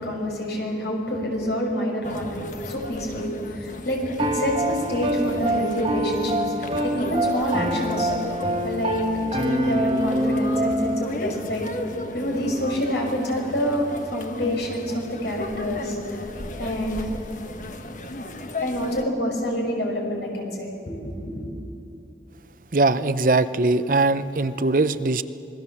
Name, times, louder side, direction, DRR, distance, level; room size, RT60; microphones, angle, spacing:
voice 1, 0.0-6.5 6.8-8.1 8.6-9.1 9.3-11.7 12.1-16.2 16.6-17.1 18.6-21.4, equal, 80° left, 1 dB, 5.7 m, -27 dB
sound 1, 2.0-19.0, left 1 dB, 45° left, 1.3 m, -35 dB
Piano, 4.2-11.0, right 1 dB, 30° right, 1.5 m, -25 dB
voice 2, 22.7-25.2, right 3 dB, 50° right, 12 dB, 0.7 m, -21 dB
26.0 x 21.0 x 7.3 m, 2.7 s
head